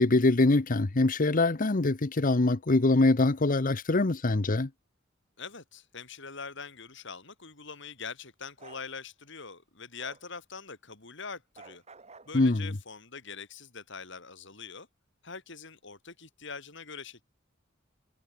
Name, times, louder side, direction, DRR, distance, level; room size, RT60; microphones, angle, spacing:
voice 1, 0.0-4.7 12.3-12.7, left 2 dB, 45° left, 0.9 m, -24 dB
voice 2, 5.4-11.8 12.3-14.9 15.2-17.2, left 5 dB, 65° left, 6.8 m, -43 dB
Bark, 8.6-8.9 10.0-10.2 11.6-12.3, right 4 dB, 35° right, 5.5 m, -50 dB
head